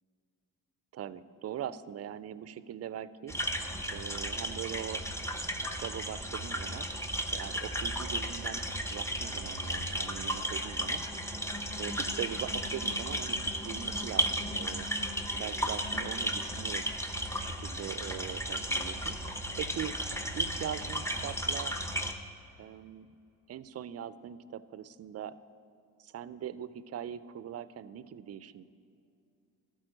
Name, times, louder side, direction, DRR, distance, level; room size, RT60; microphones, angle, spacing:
voice 1, 0.9-3.4 3.9-5.0 5.8-6.9 7.3-11.0 11.8-14.9 15.3-16.8 17.3-19.2 19.6-20.0 20.4-21.7 22.6-23.1 23.5-25.3 26.0-28.6, right 10 dB, 40° right, 16 dB, 0.4 m, -41 dB
sound 1, 3.3-22.1, equal, 5° left, 0.8 m, -34 dB
12.5 x 4.5 x 7.7 m, 2.5 s
cardioid pair, 85°, 39 cm